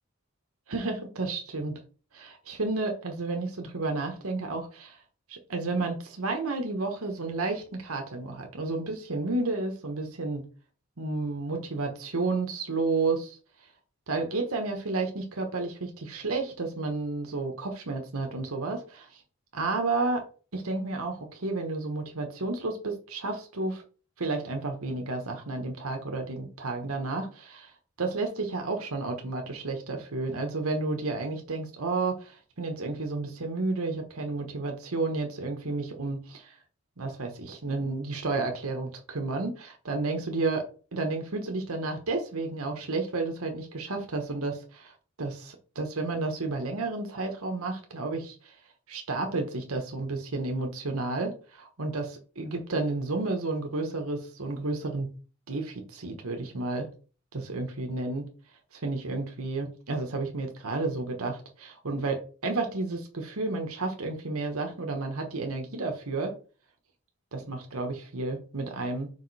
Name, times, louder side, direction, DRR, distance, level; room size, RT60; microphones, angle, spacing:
voice 1, 0.7-1.8 2.1-5.0 5.3-10.4 11.0-13.4 14.1-19.2 19.5-20.3 20.5-23.8 24.2-27.7 28.0-36.6 37.0-44.9 45.2-48.5 48.9-55.1 55.5-56.9 57.3-58.3 58.7-66.3 67.3-69.1, right 3 dB, 85° right, 1.2 m, -31 dB
5.1 x 4.9 x 4.2 m
head